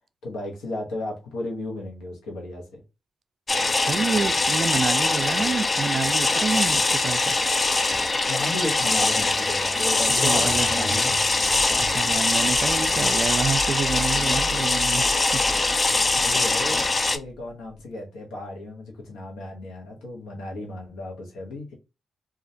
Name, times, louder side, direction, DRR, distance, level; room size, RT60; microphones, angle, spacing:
voice 1, 0.2-2.8 8.3-11.2 12.1-12.4 14.3-14.5 15.8-16.8 17.1-21.7, left 2 dB, 90° left, 0.8 m, -34 dB
sound 1, 3.5-17.2, left 3 dB, 35° left, 0.3 m, -22 dB
voice 2, 3.9-7.4 10.2-11.2 11.8-15.9, right 5 dB, 55° right, 0.3 m, -28 dB
sound 2, 10.0-17.8, equal, 60° left, 0.9 m, -39 dB
2.4 x 2.1 x 2.6 m
supercardioid pair, 60°, 0 cm